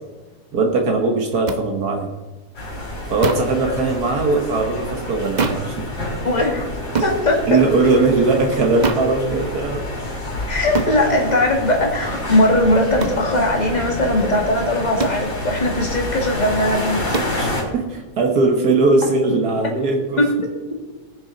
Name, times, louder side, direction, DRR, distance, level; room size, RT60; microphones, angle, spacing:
voice 1, 0.5-2.1 3.1-5.8 7.5-9.8 17.4-20.2, right 3 dB, 70° right, 2 dB, 1.8 m, -19 dB
sound 1, 1.5-1.6 3.2-3.6 5.4-5.7 6.9-7.2 8.8-9.1 10.7-11.0 13.0-13.2 15.0-15.3 17.1-17.4, right 4 dB, 35° right, 0.8 m, -23 dB
sound 2, 2.5-17.6, left 1 dB, 85° left, 4.0 m, -28 dB
voice 2, 6.2-6.7 7.0-7.6 10.5-17.5 20.2-20.5, left 1 dB, 25° left, 0 dB, 2.2 m, -19 dB
19.0 x 7.0 x 3.9 m, 1.2 s
omnidirectional pair, 1.7 m